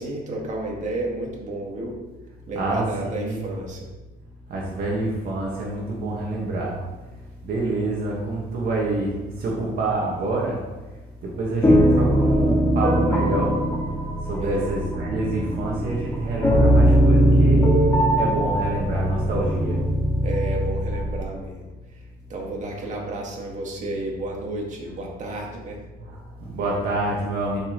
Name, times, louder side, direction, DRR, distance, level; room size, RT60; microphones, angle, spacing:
voice 1, 0.0-1.9 2.5-3.9 14.4-14.7 20.2-21.6 22.3-25.8, right 2 dB, 45° right, -1 dB, 2.1 m, -31 dB
voice 2, 2.5-3.4 4.5-13.8 14.2-19.9 26.0-27.6, right 2 dB, 65° right, -3 dB, 1.8 m, -27 dB
sound 1, 11.6-21.2, equal, 15° left, 2.2 m, -20 dB
11.5 x 5.3 x 3.2 m, 1.2 s
cardioid pair, 110°, 17 cm